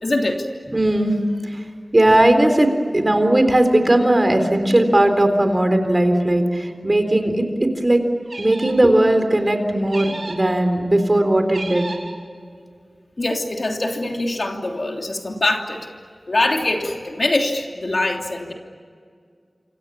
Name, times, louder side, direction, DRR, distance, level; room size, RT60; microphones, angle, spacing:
voice 1, 0.0-0.5 13.2-15.9 16.3-18.5, left 2 dB, 55° left, 2 dB, 3.2 m, -23 dB
voice 2, 0.7-1.1 1.4-1.6 1.9-8.0 8.4-11.9, right 1 dB, 30° right, 7 dB, 4.0 m, -17 dB
sound 1, 8.3-8.9 9.9-10.5 11.5-12.2, right 2 dB, 65° right, 4.6 m, -33 dB
28.0 x 26.5 x 7.2 m, 2.1 s
wide cardioid pair, 80°, 0 cm